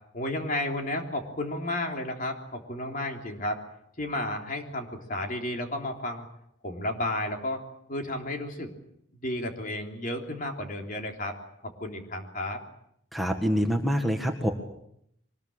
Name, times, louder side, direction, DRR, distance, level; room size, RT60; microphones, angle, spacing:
voice 1, 0.1-3.6 4.0-6.3 6.6-7.6 7.9-8.7 9.2-11.4 11.6-12.6, left 1 dB, 45° left, 3 dB, 3.5 m, -32 dB
voice 2, 13.1-14.5, equal, ahead, 3 dB, 1.7 m, -26 dB
24.0 x 20.5 x 8.8 m, 0.74 s
head